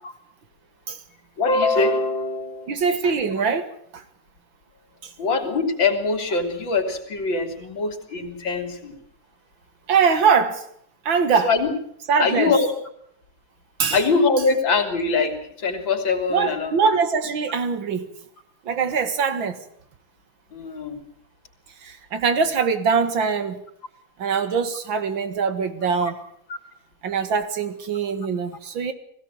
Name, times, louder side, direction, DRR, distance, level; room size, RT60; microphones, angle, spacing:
voice 1, 1.4-2.7 5.2-8.9 11.4-11.7 12.2-12.7 13.9-15.4 15.6-16.7 20.5-21.0 26.0-26.1, left 4 dB, 85° left, 3.8 m, -22 dB
voice 2, 2.7-4.0 5.0-5.1 9.9-10.6 11.0-11.6 12.1-12.6 13.8-14.0 16.3-18.1 18.6-19.6 21.8-23.6 24.2-26.2 27.0-28.9, right 5 dB, 85° right, 2.5 m, -22 dB
20.5 x 16.0 x 8.8 m
omnidirectional pair, 2.1 m